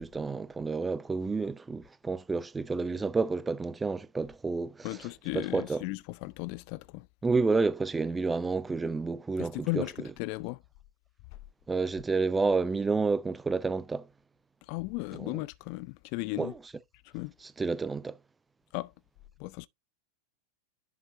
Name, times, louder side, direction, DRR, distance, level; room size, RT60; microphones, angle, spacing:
voice 1, 0.0-4.9 5.3-5.8 7.2-10.1 11.7-14.1 15.2-15.4 16.4-16.5 17.6-18.2, right 4 dB, 10° right, 0.5 m, -30 dB
voice 2, 4.8-7.1 9.4-10.6 14.7-16.5 17.0-17.3 18.7-18.9 19.4-19.7, left 23 dB, 45° left, 0.4 m, -36 dB
10.5 x 5.6 x 2.6 m
figure-of-eight pair, 90°, 0 cm